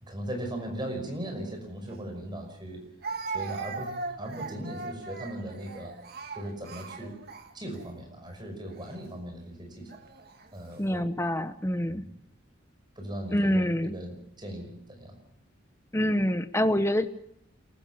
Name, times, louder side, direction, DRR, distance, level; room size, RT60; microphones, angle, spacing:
voice 1, 0.0-2.8 3.3-6.0 6.3-7.2 7.5-10.0 10.5-11.1 11.9-12.1 13.0-15.2, right 1 dB, 20° right, 3 dB, 5.7 m, -38 dB
Speech, 1.9-2.0 3.0-7.9 8.7-9.0 9.9-10.5, right 4 dB, 50° right, 1.8 m, -39 dB
voice 2, 10.8-12.0 13.3-14.0 15.9-17.1, equal, 15° left, 10 dB, 1.0 m, -26 dB
28.0 x 14.5 x 7.0 m, 0.73 s
head